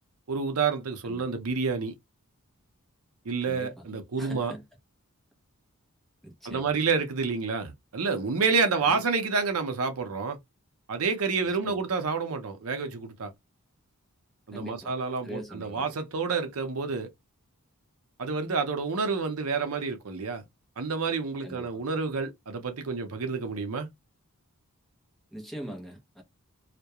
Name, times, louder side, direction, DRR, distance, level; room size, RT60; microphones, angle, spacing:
voice 1, 0.3-1.9 3.2-4.5 6.4-10.4 10.9-13.3 14.5-17.1 18.2-20.4 20.8-23.9, right 4 dB, 75° right, 0.6 m, -29 dB
voice 2, 1.0-1.4 3.4-3.8 4.2-4.6 6.2-6.8 8.8-9.0 11.4-11.8 14.5-14.9 15.2-15.8 21.4-21.8 25.3-26.2, equal, ahead, 0.6 m, -42 dB
2.3 x 2.1 x 2.7 m
head